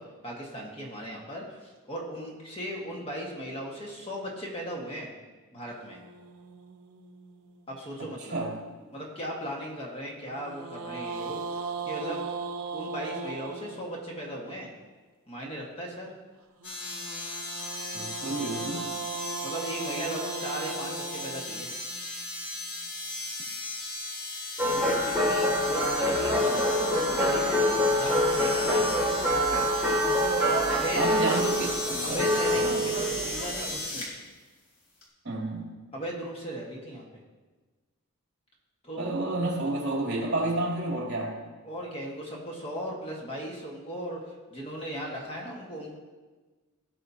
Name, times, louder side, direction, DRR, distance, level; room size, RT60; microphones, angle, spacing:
voice 1, 0.0-5.1 5.5-6.0 7.7-8.4 8.9-12.3 12.7-14.7 15.3-16.1 19.4-21.7 24.7-29.2 30.6-31.7 32.0-34.1 35.9-37.1 38.8-39.2 41.6-44.2 44.5-46.0, equal, 25° left, -2 dB, 1.5 m, -37 dB
sound 1, 5.7-8.1 10.3-14.5 16.6-22.8, right 4 dB, 75° right, 0.8 m, -39 dB
sound 2, 16.6-34.1 35.0-35.1, left 2 dB, 70° left, 3.0 m, -36 dB
voice 2, 17.9-18.8 30.9-32.8 35.2-35.7 39.0-41.3, right 2 dB, 55° right, -3 dB, 2.9 m, -30 dB
sound 3, 24.6-33.8, equal, 10° right, 2.1 m, -26 dB
17.0 x 6.4 x 2.8 m, 1.3 s
head